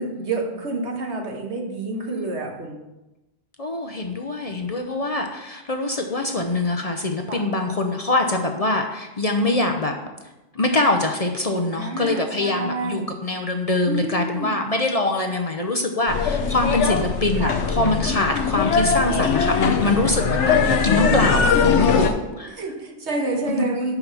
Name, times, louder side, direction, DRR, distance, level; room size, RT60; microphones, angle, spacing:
voice 1, 0.0-2.8 7.3-7.4 11.5-13.1 13.8-14.6 17.4-17.5 19.6-20.0 22.5-23.9, right 2 dB, 75° right, 2 dB, 1.5 m, -29 dB
voice 2, 2.0-2.4 3.6-9.9 10.5-22.6 23.5-23.8, left 2 dB, 40° left, 4 dB, 0.6 m, -24 dB
sound 1, 16.1-22.1, left 6 dB, 90° left, 1.1 m, -21 dB
5.9 x 5.8 x 6.8 m, 1.0 s
omnidirectional pair, 1.2 m